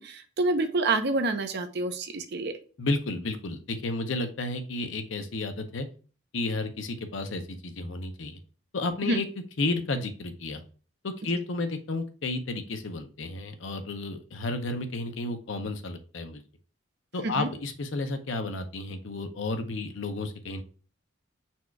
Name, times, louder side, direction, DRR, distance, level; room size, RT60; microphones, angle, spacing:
voice 1, 0.0-2.5 9.0-9.2 17.2-17.5, right 2 dB, 55° right, 7 dB, 0.7 m, -27 dB
voice 2, 2.8-5.9 6.3-8.4 8.7-9.3 9.6-10.6 11.0-16.4 17.1-20.6, left 2 dB, 70° left, 7 dB, 0.7 m, -32 dB
4.3 x 2.4 x 4.4 m, 0.37 s
head